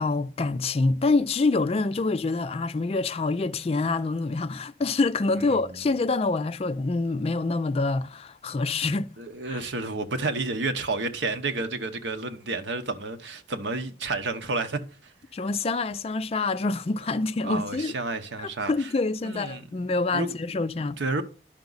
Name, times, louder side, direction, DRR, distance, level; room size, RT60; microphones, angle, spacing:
voice 1, 0.0-9.1 9.5-9.6 15.3-18.0 18.4-21.0, left 3 dB, 30° left, 0.3 m, -26 dB
voice 2, 9.2-15.1 17.4-18.9 19.2-19.6 20.1-20.3 21.0-21.2, right 3 dB, 75° right, 0.9 m, -30 dB
10.5 x 5.9 x 3.9 m
head